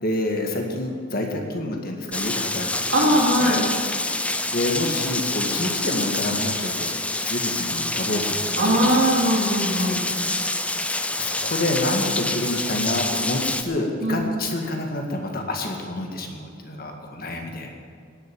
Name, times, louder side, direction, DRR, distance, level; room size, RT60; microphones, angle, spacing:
voice 1, 0.0-3.7 4.5-9.1 11.2-17.8, left 1 dB, 45° left, 2 dB, 2.0 m, -28 dB
Rain, 2.1-13.6, left 2 dB, 5° left, 0.6 m, -27 dB
voice 2, 2.9-3.6 8.6-10.0 14.0-14.2, equal, 60° right, -3 dB, 3.7 m, -20 dB
18.0 x 8.0 x 9.1 m, 2.1 s
head